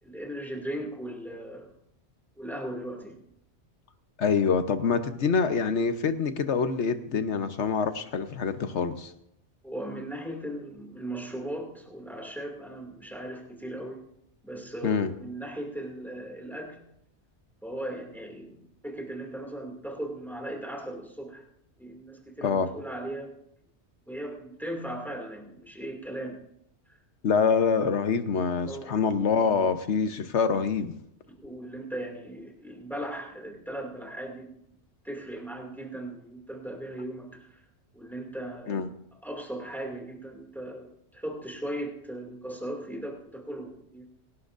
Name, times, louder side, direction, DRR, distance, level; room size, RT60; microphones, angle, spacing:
voice 1, 0.0-1.7 2.4-3.2 9.6-14.0 14.4-16.8 17.6-21.4 21.8-23.4 24.1-26.4 28.7-28.9 31.3-34.6 35.0-37.6 37.9-38.9 39.2-44.1, right 1 dB, ahead, 0 dB, 2.5 m, -38 dB
voice 2, 4.2-9.1 14.8-15.1 22.4-22.7 27.2-30.9 38.7-38.9, left 5 dB, 80° left, 9 dB, 1.3 m, -25 dB
29.0 x 11.5 x 2.6 m, 0.74 s
omnidirectional pair, 1.2 m